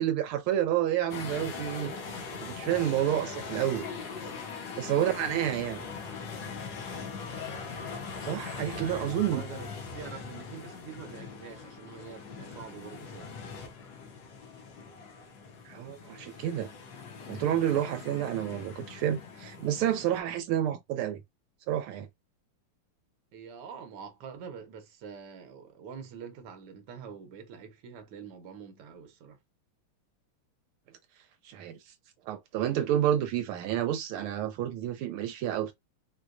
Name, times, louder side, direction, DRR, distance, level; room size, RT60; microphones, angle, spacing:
voice 1, 0.0-1.9 2.4-3.9 4.8-5.8 8.2-9.4 15.6-16.7 17.3-21.2 21.7-22.1 31.4-31.8 32.3-35.7, right 11 dB, 80° right, 1.4 m, -29 dB
sound 1, 1.1-20.2, left 5 dB, 65° left, 1.4 m, -41 dB
voice 2, 4.9-5.2 8.7-13.4 13.8-13.9 23.3-29.4, right 6 dB, 60° right, 1.3 m, -45 dB
4.5 x 2.2 x 2.5 m
omnidirectional pair, 2.4 m